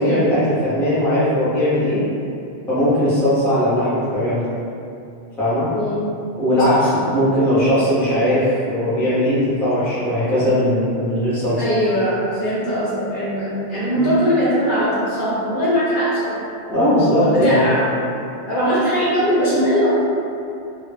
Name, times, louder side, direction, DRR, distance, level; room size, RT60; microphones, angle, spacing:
voice 1, 0.0-2.0 2.7-4.5 5.4-5.7 6.3-11.6 13.9-14.1 16.7-17.6, equal, ahead, -12 dB, 0.6 m, -18 dB
voice 2, 5.7-6.0 6.6-6.8 11.6-16.4 17.2-17.8 18.5-19.9, equal, 60° left, -9 dB, 0.8 m, -20 dB
2.1 x 2.0 x 3.3 m, 2.6 s
omnidirectional pair, 1.1 m